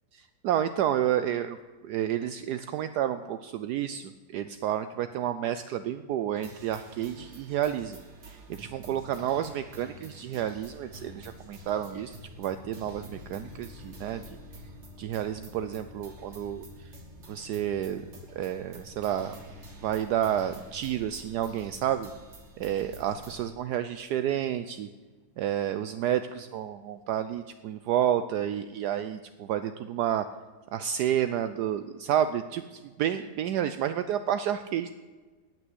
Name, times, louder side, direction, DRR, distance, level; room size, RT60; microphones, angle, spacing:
voice 1, 0.2-1.6 1.8-8.0 8.2-14.2 15.0-16.9 17.3-18.1 18.4-19.4 19.8-22.1 22.6-24.9 25.4-30.3 30.7-34.9, right 10 dB, 75° right, 10 dB, 1.1 m, -30 dB
sound 1, 6.3-23.5, equal, 40° right, 1.9 m, -48 dB
18.0 x 6.2 x 7.9 m, 1.4 s
omnidirectional pair, 1.9 m